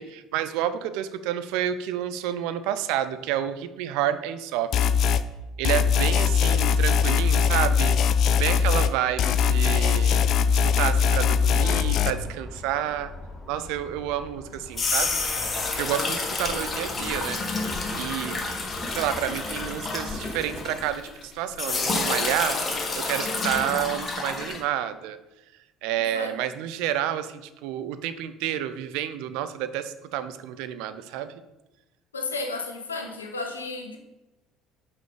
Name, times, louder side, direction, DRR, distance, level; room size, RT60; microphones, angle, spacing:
voice 1, 0.0-4.8 5.6-8.0 8.4-10.2 10.6-13.1 13.5-15.2 15.7-17.7 18.0-18.4 18.9-22.6 22.9-25.2 25.8-31.3, right 11 dB, 65° right, 11 dB, 0.4 m, -29 dB
sound 1, 4.7-5.2 5.6-8.9 9.2-12.1, left 7 dB, 50° left, 0.4 m, -21 dB
sound 2, 11.0-20.7, left 1 dB, 10° left, 2.3 m, -41 dB
sound 3, 14.5-21.2 21.6-24.6, left 3 dB, 30° left, 1.4 m, -29 dB
voice 2, 32.1-34.0, left 3 dB, 85° left, 5 dB, 0.8 m, -32 dB
5.6 x 5.0 x 4.7 m, 1.0 s
figure-of-eight pair, 60°, 0 cm